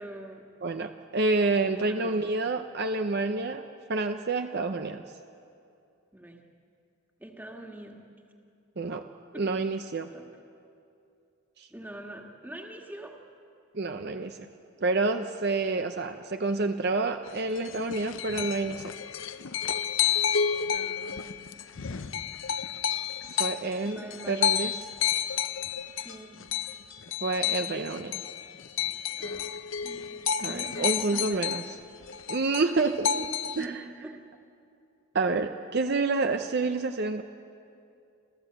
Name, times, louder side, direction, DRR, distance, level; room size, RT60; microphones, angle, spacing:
voice 1, 0.0-0.5 1.6-2.2 6.1-6.4 7.2-8.0 9.3-9.5 10.1-10.3 11.7-13.1 20.7-21.4 21.7-22.2 23.8-24.5 26.0-26.4 29.2-29.6 29.8-31.6 33.6-34.2, right 1 dB, 10° right, 1 dB, 1.7 m, -44 dB
voice 2, 0.6-3.6 3.9-5.0 8.8-9.0 9.3-10.1 11.6-11.7 13.7-14.5 14.8-18.8 23.4-24.7 27.2-28.2 30.4-31.6 32.3-33.3 33.6-33.7 35.1-37.2, right 3 dB, 50° right, 7 dB, 0.6 m, -28 dB
sound 1, 17.3-31.7 32.0-33.7, left 8 dB, 60° left, 0.6 m, -30 dB
28.0 x 14.5 x 7.9 m, 2.5 s
head